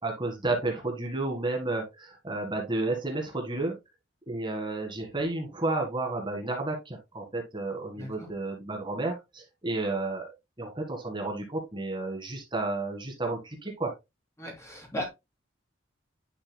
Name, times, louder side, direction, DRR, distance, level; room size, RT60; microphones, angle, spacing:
voice 1, 0.0-3.8 4.3-13.9, right 2 dB, 25° right, 1.9 m, -32 dB
voice 2, 8.0-8.3 14.4-15.1, left 1 dB, 15° left, 3.0 m, -36 dB
10.0 x 5.6 x 2.2 m
head